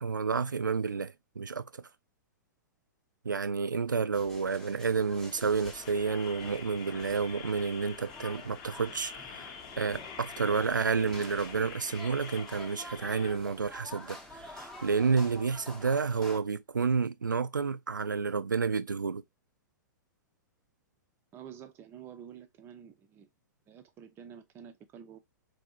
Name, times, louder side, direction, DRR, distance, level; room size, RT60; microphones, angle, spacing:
voice 1, 0.0-1.8 3.2-19.2, right 5 dB, 80° right, 0.4 m, -30 dB
sound 1, 4.1-16.4, left 1 dB, 5° left, 0.8 m, -49 dB
sound 2, 5.3-13.3, left 6 dB, 40° left, 0.8 m, -47 dB
voice 2, 21.3-23.3 23.7-25.2, right 8 dB, 25° right, 0.5 m, -49 dB
4.0 x 2.6 x 2.7 m
figure-of-eight pair, 105°, 10 cm